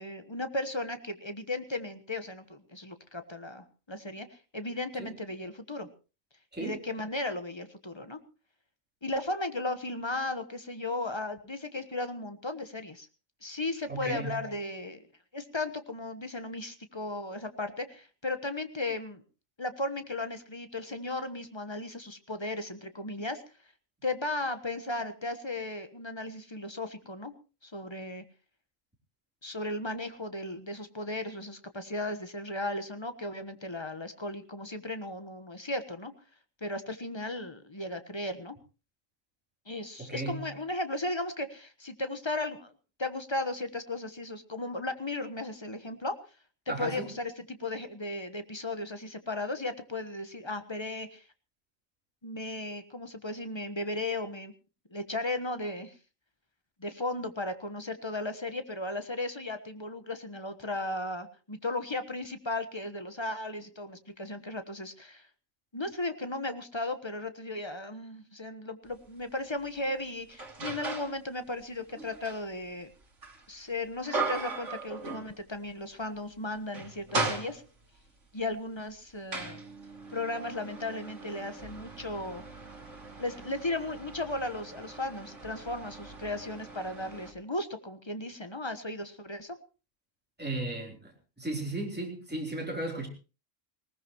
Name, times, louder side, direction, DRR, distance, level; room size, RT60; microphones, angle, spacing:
voice 1, 0.0-5.9 6.6-8.2 9.0-13.1 13.4-15.0 15.3-19.2 19.6-23.4 24.0-27.3 27.6-28.2 29.4-36.1 36.6-38.6 39.7-42.7 43.0-46.2 46.7-51.2 52.2-54.5 54.9-55.9 56.8-65.3 65.7-72.9 73.5-77.6 78.3-79.6 80.1-82.4 83.2-89.6, left 2 dB, 20° left, 9 dB, 1.2 m, -36 dB
voice 2, 13.9-14.4 40.0-40.5 46.7-47.1 90.4-91.1 91.4-93.1, right 2 dB, 5° right, 0 dB, 3.6 m, -35 dB
sound 1, 68.9-69.1 69.6-71.2 71.6-75.7 76.0-76.2 76.6-78.0 78.7-87.3, right 3 dB, 65° right, 2.8 m, -38 dB
19.5 x 19.0 x 3.0 m, 0.33 s
omnidirectional pair, 1.4 m